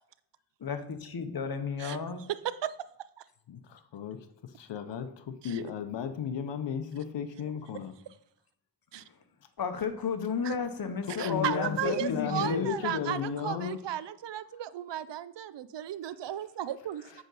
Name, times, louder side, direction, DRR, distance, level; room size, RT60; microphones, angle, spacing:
voice 1, 0.6-2.3 9.0-9.1 9.6-12.7, left 6 dB, 55° left, 8 dB, 1.1 m, -33 dB
voice 2, 2.3-2.8 3.2-3.3 5.4-5.6 7.4-7.5 8.9-9.0 10.4-10.5 11.2-17.2, right 11 dB, 80° right, 15 dB, 0.6 m, -35 dB
voice 3, 3.5-4.3 4.6-7.9 11.1-13.8, left 7 dB, 90° left, 9 dB, 0.7 m, -34 dB
8.9 x 5.1 x 4.0 m, 0.74 s
cardioid pair, 55°, 42 cm